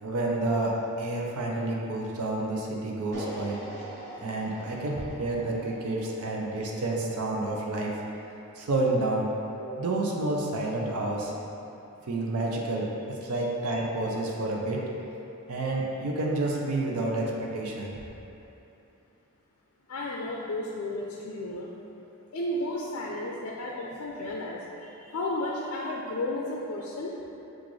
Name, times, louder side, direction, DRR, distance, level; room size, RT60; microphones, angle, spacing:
voice 1, 0.0-3.6 4.2-8.0 8.6-9.3 9.6-11.3 12.1-14.8 15.5-18.0, right 2 dB, 85° right, -2 dB, 0.6 m, -29 dB
sound 1, 3.1-9.3, right 1 dB, 50° right, 1.1 m, -45 dB
voice 2, 19.9-21.7 22.3-27.1, left 1 dB, 75° left, -3 dB, 0.4 m, -33 dB
6.0 x 2.5 x 3.1 m, 2.9 s
head